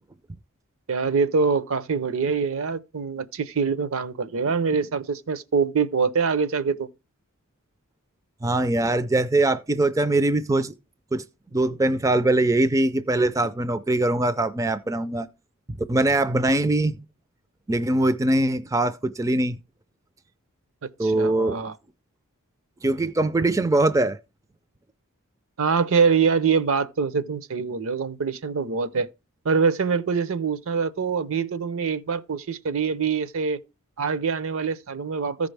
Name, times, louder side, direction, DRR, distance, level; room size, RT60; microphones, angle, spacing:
voice 1, 0.9-6.9 21.0-21.8 25.6-29.1 29.4-33.6 34.0-35.5, right 5 dB, 65° right, 0.7 m, -24 dB
voice 2, 8.4-10.7 11.1-11.2 11.5-15.3 15.7-17.0 17.7-19.6 21.0-21.6 22.8-24.2, right 2 dB, 15° right, 0.4 m, -22 dB
14.5 x 5.2 x 3.3 m
head